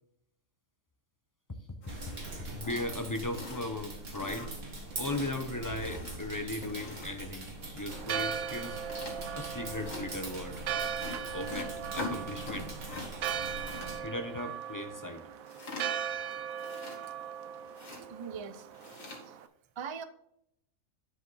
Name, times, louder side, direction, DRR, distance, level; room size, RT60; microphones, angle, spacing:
voice 1, 1.5-2.1 2.5-4.5 5.0-8.8 9.3-10.7 11.3-12.7 14.0-15.2, left 2 dB, 25° left, 6 dB, 0.4 m, -37 dB
sound 1, 1.8-2.5 2.9-3.0 3.3-3.8 4.2-4.7 5.0-5.4 5.8-7.3 7.9-8.3 8.9-9.2 9.8-10.0 11.0-13.1 13.3-13.9 15.5-16.1 16.5-17.3 17.7-18.0 18.7-19.2, left 3 dB, 70° left, 2.4 m, -43 dB
sound 2, 1.9-14.0, right 2 dB, 60° right, 2.3 m, -42 dB
Church bell, 7.9-19.5, right 8 dB, 80° right, 1.1 m, -38 dB
voice 2, 18.1-19.0 19.3-19.4 19.8-20.0, right 6 dB, 45° right, 10 dB, 0.3 m, -41 dB
10.5 x 5.0 x 4.1 m, 0.74 s
omnidirectional pair, 1.5 m